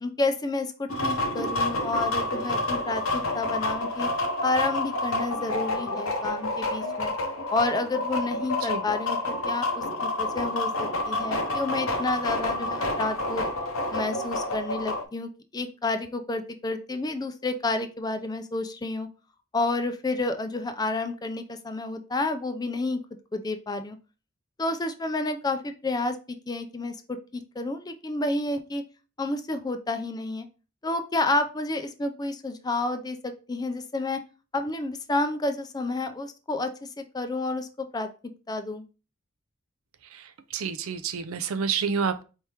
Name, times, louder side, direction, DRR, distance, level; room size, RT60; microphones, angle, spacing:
voice 1, 0.0-4.1 4.4-7.1 7.5-13.5 13.9-19.1 19.5-23.0 23.3-24.0 24.6-26.2 26.5-28.8 29.2-30.5 30.8-33.2 33.5-34.2 34.5-38.1 38.5-38.8, left 2 dB, 20° left, 8 dB, 0.4 m, -30 dB
sound 1, 0.9-15.0, left 2 dB, 75° left, 0.8 m, -29 dB
voice 2, 40.5-42.2, right 6 dB, 85° right, 11 dB, 0.5 m, -28 dB
4.5 x 3.4 x 2.9 m, 0.33 s
head